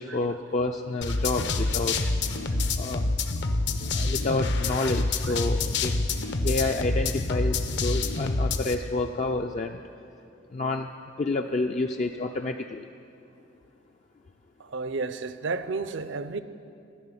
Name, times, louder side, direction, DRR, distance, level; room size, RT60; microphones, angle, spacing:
voice 1, 0.0-2.0 2.8-3.1 3.9-6.0 6.4-9.8 10.5-10.9 11.2-12.8, left 2 dB, 35° left, 0.3 m, -29 dB
sound 1, 1.0-8.7, left 3 dB, 60° left, 0.7 m, -27 dB
voice 2, 14.6-16.4, right 4 dB, 70° right, 0.6 m, -32 dB
13.5 x 6.2 x 9.7 m
head